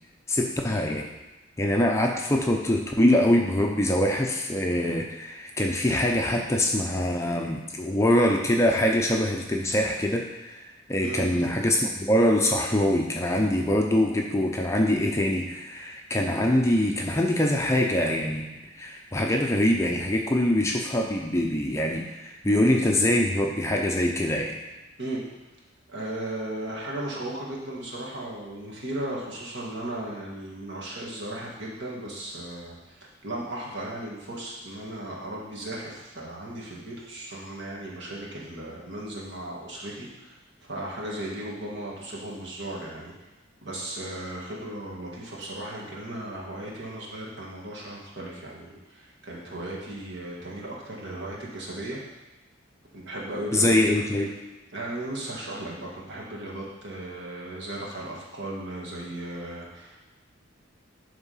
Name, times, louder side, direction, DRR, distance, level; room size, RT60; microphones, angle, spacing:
voice 1, 0.3-1.1 1.6-18.5 18.7-24.6 53.5-54.3, left 1 dB, 15° left, 1 dB, 0.5 m, -24 dB
voice 2, 11.0-11.3 25.0-25.2 25.9-40.4 40.7-43.1 43.6-52.0 52.9-54.0 54.7-60.0, right 1 dB, 55° right, -4 dB, 2.0 m, -36 dB
11.0 x 3.7 x 5.6 m, 1.1 s
head